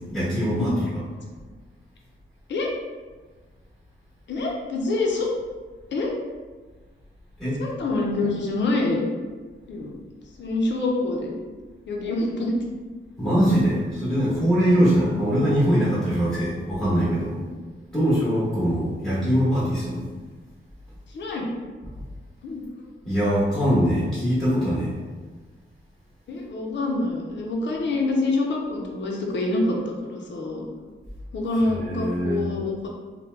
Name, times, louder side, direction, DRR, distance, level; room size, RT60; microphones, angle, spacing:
voice 1, 0.1-0.9 7.4-7.6 13.2-17.4 17.9-20.0 23.0-24.9 31.5-32.4, equal, 5° left, -11 dB, 1.1 m, -22 dB
voice 2, 4.3-5.3 5.9-6.2 7.6-9.0 9.7-9.9 10.4-11.3 11.9-12.6 17.4-17.5 21.1-21.6 22.4-22.9 26.3-29.8 30.0-30.7 31.3-32.9, left 2 dB, 60° left, -1 dB, 0.6 m, -26 dB
3.0 x 2.1 x 3.1 m, 1.4 s
wide cardioid pair, 120°, 21 cm